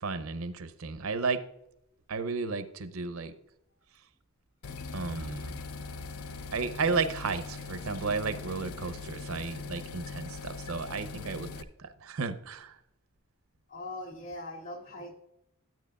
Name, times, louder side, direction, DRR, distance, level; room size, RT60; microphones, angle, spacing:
voice 1, 0.0-1.4 2.1-3.3 4.9-5.5 6.5-12.8, right 4 dB, 75° right, 11 dB, 0.7 m, -33 dB
sound 1, 4.6-11.6, left 4 dB, 85° left, 0.5 m, -41 dB
voice 2, 13.7-15.1, left 2 dB, 65° left, 0 dB, 2.3 m, -40 dB
12.5 x 8.8 x 2.3 m, 0.81 s
head